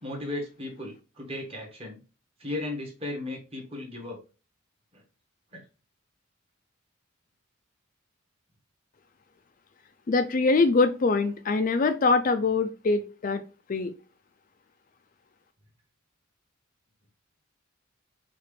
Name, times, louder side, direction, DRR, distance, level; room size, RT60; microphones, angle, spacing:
voice 1, 0.0-2.0 2.4-4.2 4.9-5.0 5.5-5.6, left 2 dB, 30° right, 0 dB, 1.5 m, -36 dB
voice 2, 10.1-13.4 13.7-13.9, left 3 dB, 40° left, 8 dB, 0.4 m, -23 dB
5.8 x 2.5 x 3.3 m, 0.32 s
head